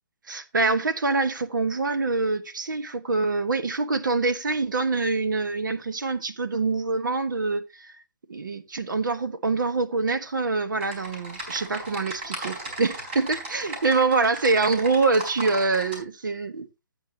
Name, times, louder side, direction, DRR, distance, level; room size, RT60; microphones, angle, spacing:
voice 1, 0.3-7.9 8.3-16.7, right 3 dB, 80° right, 1.4 m, -25 dB
Typing, 10.8-16.0, right 2 dB, 30° right, 4.2 m, -36 dB
12.5 x 8.7 x 2.8 m
hypercardioid pair, 170°, 10 cm